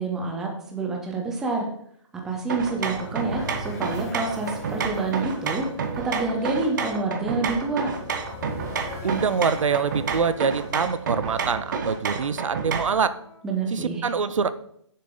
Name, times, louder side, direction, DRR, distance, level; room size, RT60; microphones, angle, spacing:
voice 1, 0.0-1.7 2.2-5.7 5.9-7.9 13.4-14.1, right 3 dB, 5° right, 1 dB, 0.4 m, -28 dB
sound 1, 2.3-12.4, left 2 dB, 30° left, 0.9 m, -42 dB
sound 2, 2.5-13.0, right 5 dB, 40° right, 0.8 m, -30 dB
Wind instrument woodwind instrument, 7.2-13.4, left 1 dB, 20° right, 2.8 m, -50 dB
voice 2, 9.0-13.1 13.7-14.5, right 6 dB, 80° right, 14 dB, 0.6 m, -25 dB
6.7 x 6.5 x 3.8 m, 0.68 s
hypercardioid pair, 160°, 16 cm